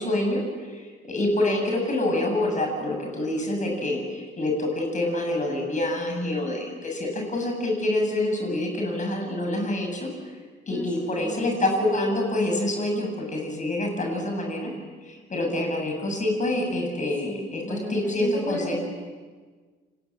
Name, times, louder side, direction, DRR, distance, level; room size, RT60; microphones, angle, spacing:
voice 1, 0.0-10.1 10.7-14.7 15.0-18.8, left 1 dB, 40° left, 1 dB, 7.4 m, -26 dB
voice 2, 10.7-11.5 17.2-18.8, left 1 dB, 5° left, 0 dB, 6.7 m, -34 dB
29.0 x 20.5 x 7.5 m, 1.5 s
cardioid pair, 90°, 20 cm